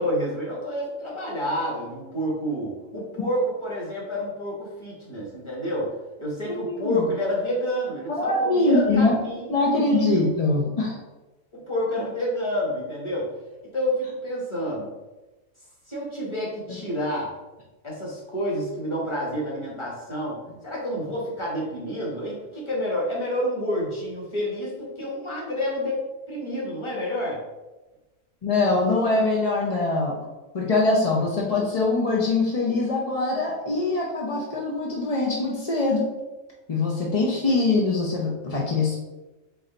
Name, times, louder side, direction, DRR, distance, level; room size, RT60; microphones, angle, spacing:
voice 1, 0.0-5.9 6.2-9.5 9.8-10.3 11.5-13.3 13.7-14.9 15.9-17.3 17.8-20.4 20.6-26.0 26.3-27.4, equal, 20° left, -5 dB, 1.3 m, -29 dB
voice 2, 6.5-7.1 8.2-9.2 9.5-11.0 28.4-30.2 30.5-36.1 36.7-39.0, left 2 dB, 45° left, -2 dB, 0.4 m, -23 dB
4.1 x 3.3 x 3.9 m, 1.1 s
omnidirectional pair, 1.4 m